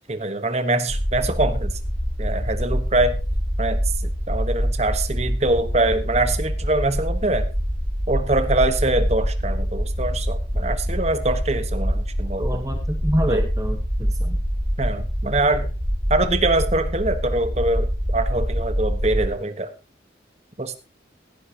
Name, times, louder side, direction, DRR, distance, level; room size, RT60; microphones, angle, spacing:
voice 1, 0.1-1.8 2.2-3.2 3.6-3.8 4.3-7.5 8.1-12.6 13.3-13.5 14.8-15.7 16.1-19.7 20.6-20.8, right 2 dB, 35° right, 10 dB, 1.2 m, -23 dB
sound 1, 0.9-19.3, equal, 15° left, 5.9 m, -25 dB
voice 2, 12.4-14.4, equal, 15° right, 5 dB, 1.1 m, -27 dB
16.5 x 11.5 x 2.9 m, 0.30 s
head